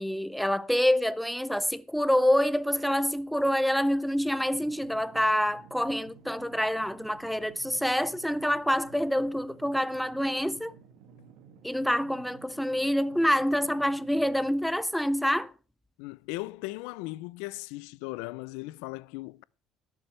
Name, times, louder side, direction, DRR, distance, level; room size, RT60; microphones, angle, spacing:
voice 1, 0.0-10.7 11.6-15.5, equal, ahead, 0.4 m, -27 dB
sound 1, 4.5-14.5, right 6 dB, 75° right, 2.2 m, -53 dB
voice 2, 16.0-19.4, left 21 dB, 90° left, 0.4 m, -38 dB
21.0 x 7.1 x 3.2 m
cardioid pair, 130°, 0 cm